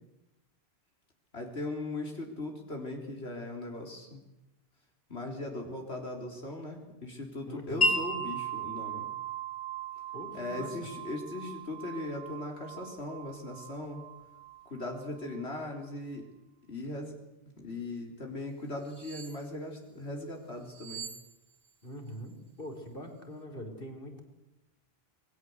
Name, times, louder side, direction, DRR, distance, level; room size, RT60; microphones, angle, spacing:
voice 1, 1.3-4.2 5.1-9.1 10.3-14.0 14.7-16.3 16.7-17.2 17.6-21.1, left 2 dB, 85° left, 2 dB, 4.2 m, -39 dB
voice 2, 7.5-7.9 10.1-10.7 21.8-24.2, equal, 60° left, 4 dB, 5.0 m, -43 dB
Wind chime, 7.8-15.4, right 1 dB, 35° left, 4.1 m, -36 dB
sound 1, 18.8-19.5 20.6-21.9 22.1-22.3, right 7 dB, 65° right, 2.3 m, -46 dB
28.5 x 22.0 x 8.1 m, 0.94 s
omnidirectional pair, 1.1 m